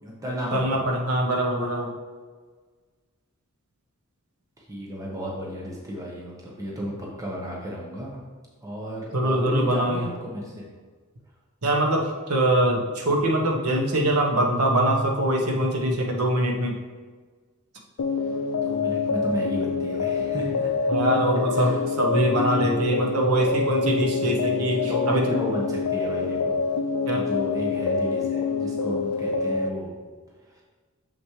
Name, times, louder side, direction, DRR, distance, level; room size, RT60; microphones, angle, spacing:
voice 1, 0.0-0.8 4.6-8.1 8.6-10.6 18.6-20.9 21.5-21.8 24.2-24.3 24.8-26.6 27.1-30.0 30.5-30.6, equal, 15° right, -4 dB, 1.2 m, -33 dB
voice 2, 0.5-1.9 9.1-10.0 11.6-16.7 20.9-25.2 27.0-27.2, right 1 dB, 80° right, 1 dB, 1.2 m, -23 dB
sound 1, 18.0-29.7, left 4 dB, 80° left, 0.4 m, -26 dB
7.1 x 6.1 x 3.2 m, 1.4 s
head